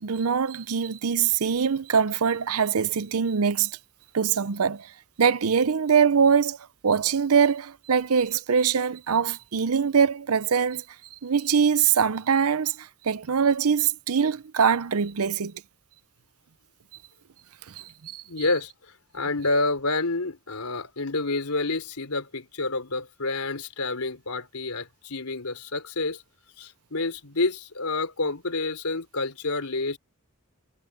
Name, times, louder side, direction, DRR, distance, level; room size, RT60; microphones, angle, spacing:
voice 1, 0.0-3.8 4.1-4.9 5.2-6.6 6.8-10.8 11.2-15.5 17.7-18.2, right 6 dB, 80° right, 0.6 m, -23 dB
voice 2, 18.2-18.7 19.1-26.2 26.6-30.0, left 3 dB, 85° left, 3.5 m, -28 dB
head